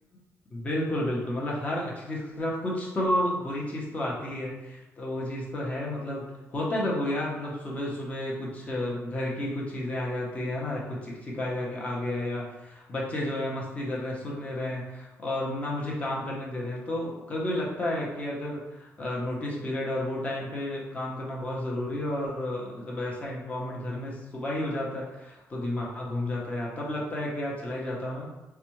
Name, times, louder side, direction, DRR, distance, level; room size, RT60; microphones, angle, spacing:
voice 1, 0.5-6.2 6.5-28.3, left 1 dB, 25° left, -4 dB, 0.9 m, -31 dB
4.0 x 2.3 x 3.0 m, 1.0 s
cardioid pair, 135°, 5 cm